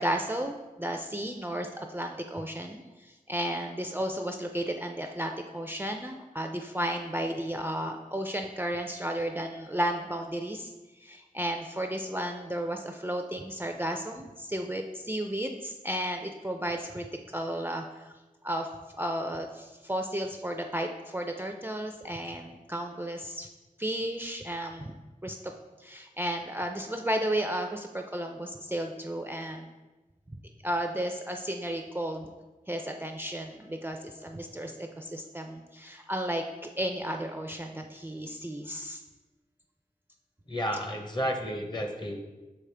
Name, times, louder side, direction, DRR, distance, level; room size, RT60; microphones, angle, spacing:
voice 1, 0.0-10.7 11.0-17.1 17.3-18.1 18.4-18.7 19.0-23.5 23.8-25.0 25.2-25.5 25.8-29.7 30.6-32.3 32.7-36.4 36.8-39.0, right 1 dB, 15° right, 4 dB, 0.4 m, -33 dB
voice 2, 40.5-42.2, equal, 30° left, 4 dB, 0.8 m, -32 dB
6.7 x 4.9 x 3.3 m, 1.1 s
wide cardioid pair, 70°, 15 cm